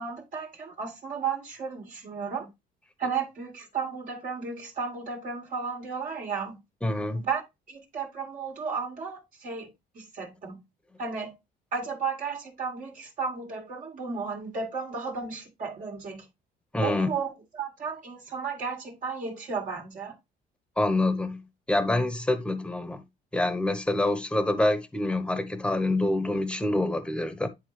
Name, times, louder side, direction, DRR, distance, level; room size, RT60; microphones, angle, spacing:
voice 1, 0.0-2.5 3.0-6.6 7.3-7.4 7.7-10.6 11.0-11.3 11.7-16.3 16.8-20.1, right 5 dB, 50° right, 1.9 m, -33 dB
voice 2, 6.8-7.2 16.7-17.1 20.8-23.0 23.3-27.5, left 2 dB, 5° left, 1.1 m, -26 dB
10.0 x 3.9 x 3.2 m
cardioid pair, 110°, 17 cm